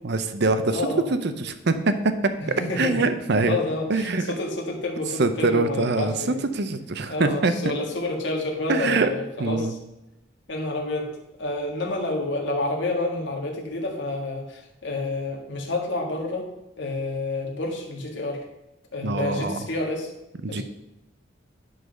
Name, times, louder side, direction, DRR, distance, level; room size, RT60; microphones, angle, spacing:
voice 1, 0.0-0.8 1.2-2.1 2.8-3.6 3.9-4.3 5.2-6.1 6.5-7.5 8.7-9.1 9.4-9.7 19.0-19.6 20.4-20.6, right 3 dB, 60° right, 10 dB, 0.7 m, -23 dB
voice 2, 0.7-1.0 2.4-3.1 3.4-6.4 7.1-9.8 10.5-11.1 11.4-16.5 16.8-18.4 18.9-20.1 20.5-20.6, left 2 dB, 70° left, 0 dB, 1.6 m, -29 dB
11.0 x 4.0 x 6.4 m, 0.89 s
head